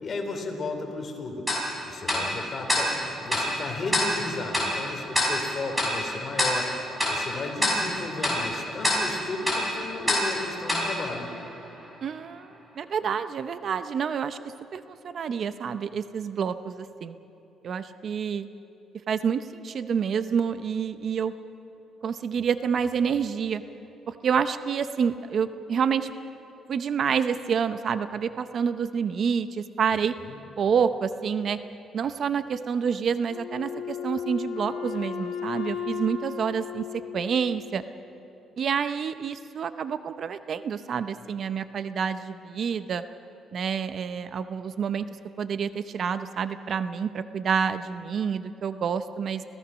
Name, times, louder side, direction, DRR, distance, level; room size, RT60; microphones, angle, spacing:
voice 1, 0.0-1.4 1.9-6.7 7.1-11.3 30.2-30.4, left 3 dB, 40° left, 3 dB, 3.2 m, -34 dB
Tick-tock, 1.5-11.9, left 1 dB, 5° right, 5.9 m, -28 dB
voice 2, 12.0-14.4 14.7-17.1 17.6-18.5 19.1-21.3 22.0-23.6 24.1-26.1 26.7-30.1 30.6-31.6 31.9-37.8 38.6-43.0 43.5-45.1 45.4-49.4, right 7 dB, 50° right, 11 dB, 0.6 m, -28 dB
Wind instrument woodwind instrument, 33.3-37.8, left 7 dB, 70° left, 3.0 m, -35 dB
26.5 x 16.5 x 6.2 m, 2.8 s
cardioid pair, 120°, 0 cm